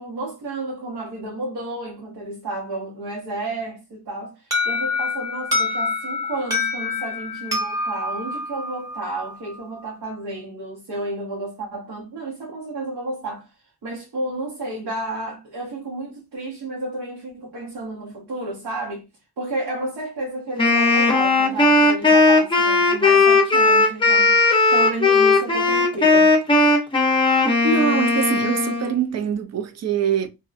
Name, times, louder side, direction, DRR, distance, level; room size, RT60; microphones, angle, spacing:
voice 1, 0.0-13.5 13.8-19.1 19.4-26.3, right 2 dB, 80° right, 0.9 m, -31 dB
Alarm, 4.5-9.3, left 3 dB, 10° right, 0.9 m, -26 dB
Wind instrument woodwind instrument, 20.6-29.0, left 3 dB, 15° left, 0.6 m, -17 dB
voice 2, 27.6-30.3, right 7 dB, 45° right, 0.4 m, -23 dB
2.6 x 2.1 x 2.4 m
wide cardioid pair, 120°, 37 cm